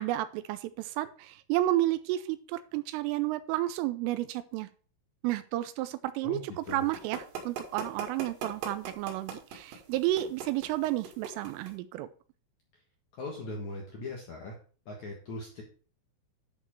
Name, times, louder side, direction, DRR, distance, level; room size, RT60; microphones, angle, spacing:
voice 1, 0.0-4.7 5.2-12.1, right 15 dB, 85° right, 13 dB, 3.0 m, -31 dB
voice 2, 6.2-6.9 13.2-14.5 14.9-15.6, left 2 dB, 75° left, 0 dB, 1.6 m, -39 dB
sound 1, 6.7-11.7, right 6 dB, 60° right, 3.9 m, -39 dB
11.0 x 5.1 x 4.7 m, 0.41 s
omnidirectional pair, 5.9 m